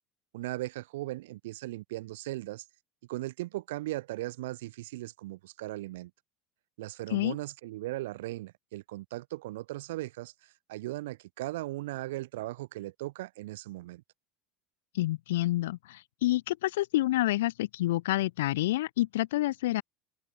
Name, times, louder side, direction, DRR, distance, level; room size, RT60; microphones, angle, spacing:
voice 1, 0.3-2.6 3.1-6.1 6.8-14.0, right 17 dB, 85° right, 2.1 m, -38 dB
voice 2, 14.9-19.8, left 16 dB, 85° left, 0.6 m, -28 dB
supercardioid pair, 110°, 0 cm